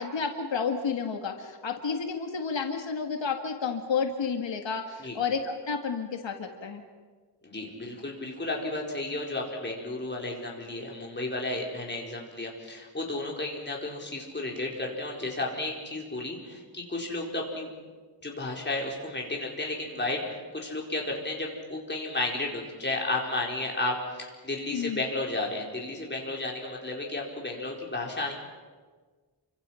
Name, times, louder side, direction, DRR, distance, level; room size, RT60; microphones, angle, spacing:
voice 1, 0.0-6.8 24.7-25.0, left 5 dB, 85° left, 4 dB, 2.0 m, -31 dB
voice 2, 7.4-17.7 18.2-28.3, left 2 dB, 25° left, -1 dB, 4.4 m, -33 dB
29.5 x 25.0 x 5.8 m, 1.4 s
wide cardioid pair, 165°, 43 cm